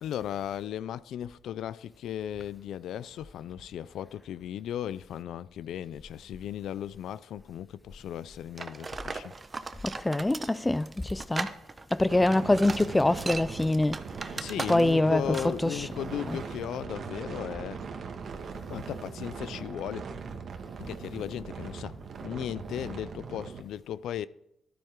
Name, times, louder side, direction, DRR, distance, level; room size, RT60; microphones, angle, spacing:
voice 1, 0.0-9.3 14.4-17.8 18.7-20.0 20.8-22.0 22.2-24.3, left 10 dB, 75° left, 0.4 m, -36 dB
sound 1, 8.6-15.1 15.3-15.6, right 4 dB, 30° right, 0.8 m, -37 dB
voice 2, 9.8-11.5 11.9-15.9 16.3-16.5, left 2 dB, 15° left, 0.4 m, -25 dB
sound 2, 12.1-23.6, right 5 dB, 55° right, 1.5 m, -40 dB
13.5 x 12.5 x 3.7 m
cardioid pair, 90°, 0 cm